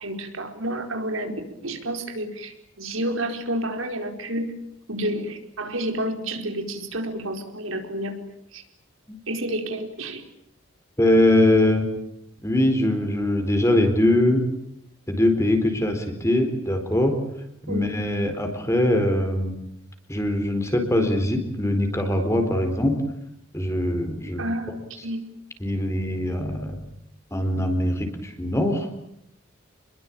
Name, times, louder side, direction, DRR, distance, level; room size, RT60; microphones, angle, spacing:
voice 1, 0.0-4.5 4.9-8.1 8.5-8.6 9.3-10.2 17.7-17.9 24.4-24.8 25.0-25.2, right 1 dB, 80° right, 4 dB, 4.8 m, -30 dB
voice 2, 11.0-11.9 12.4-14.4 15.1-17.1 17.7-19.5 20.1-23.0 23.5-24.4 25.6-26.8 27.3-28.9, left 1 dB, 15° left, 6 dB, 4.3 m, -22 dB
29.5 x 22.0 x 8.8 m, 0.75 s
head